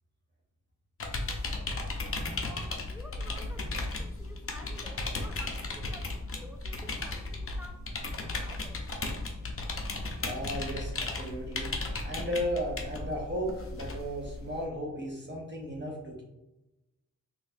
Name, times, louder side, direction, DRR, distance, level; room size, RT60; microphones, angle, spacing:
sound 1, 1.0-14.7, left 2 dB, 45° left, 0.5 m, -35 dB
voice 1, 2.4-8.8, equal, 5° right, 3 dB, 0.3 m, -51 dB
voice 2, 10.2-11.7 12.0-16.2, equal, 35° right, -2 dB, 0.7 m, -35 dB
3.8 x 2.4 x 2.6 m, 0.97 s
wide cardioid pair, 100°, 33 cm